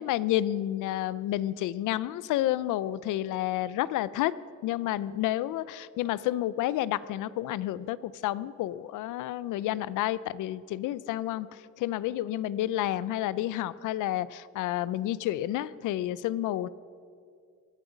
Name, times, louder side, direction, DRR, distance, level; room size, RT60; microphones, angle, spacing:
voice 1, 0.0-4.3 4.6-11.5 11.8-16.7, left 14 dB, 85° left, 18 dB, 0.5 m, -30 dB
19.5 x 11.0 x 5.1 m, 2.4 s
cardioid pair, 90°, 30 cm